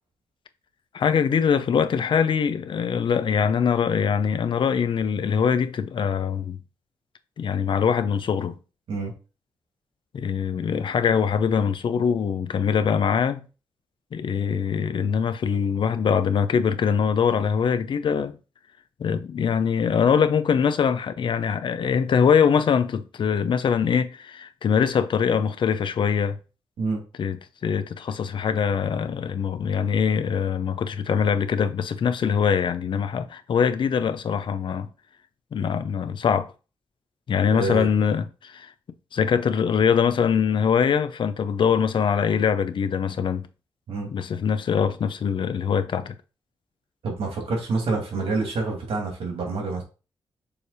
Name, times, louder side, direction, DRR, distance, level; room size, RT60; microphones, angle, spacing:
voice 1, 0.9-6.6 7.4-8.6 10.1-13.5 14.1-18.4 19.0-26.4 27.2-34.9 35.5-36.5 37.3-38.7 39.1-43.4 44.1-46.2, left 7 dB, 60° left, 0.6 m, -23 dB
voice 2, 37.5-37.9 43.9-44.1 47.0-49.8, right 3 dB, 85° right, 2.5 m, -27 dB
6.8 x 3.4 x 4.1 m
wide cardioid pair, 150°, 9 cm